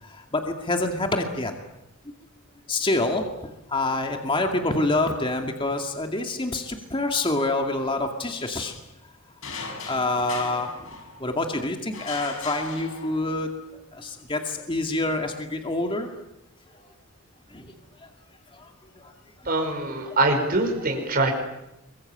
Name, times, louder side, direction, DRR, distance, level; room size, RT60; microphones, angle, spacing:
voice 1, 0.0-1.5 2.7-8.8 9.9-10.7 11.2-13.5 13.9-16.1 17.5-17.7 18.5-18.7 19.0-19.1, left 2 dB, 25° left, 4 dB, 2.3 m, -27 dB
sound 1, 9.4-11.4 11.9-13.5, left 4 dB, 65° left, 6.5 m, -38 dB
voice 2, 19.5-21.3, right 2 dB, 40° right, 2 dB, 5.2 m, -23 dB
26.5 x 23.5 x 8.9 m, 0.89 s
head